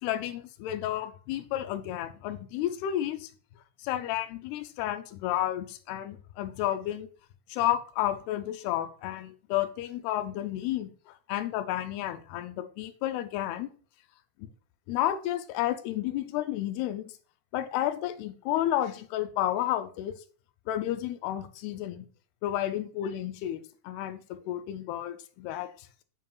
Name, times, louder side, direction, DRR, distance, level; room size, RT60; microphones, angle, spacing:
voice 1, 0.0-3.3 3.8-7.1 7.5-13.7 14.4-14.5 14.9-17.0 17.5-20.1 20.7-22.1 22.4-24.2 24.5-25.9, left 13 dB, 85° left, 2.5 m, -31 dB
7.1 x 5.6 x 2.4 m
omnidirectional pair, 4.6 m